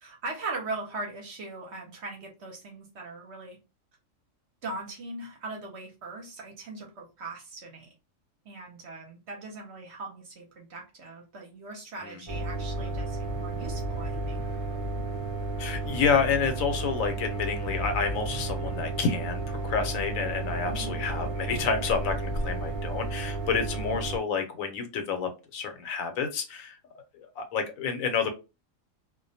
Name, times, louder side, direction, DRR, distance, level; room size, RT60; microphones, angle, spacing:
voice 1, 0.0-3.6 4.6-7.9 8.4-14.5 20.7-21.0 23.9-24.0, right 3 dB, 60° right, 0 dB, 0.9 m, -40 dB
sound 1, 12.3-24.2, right 2 dB, 40° right, 0.5 m, -32 dB
voice 2, 15.6-26.8 27.2-28.3, left 6 dB, 90° left, 6 dB, 1.0 m, -29 dB
2.4 x 2.1 x 2.6 m, 0.28 s
omnidirectional pair, 1.4 m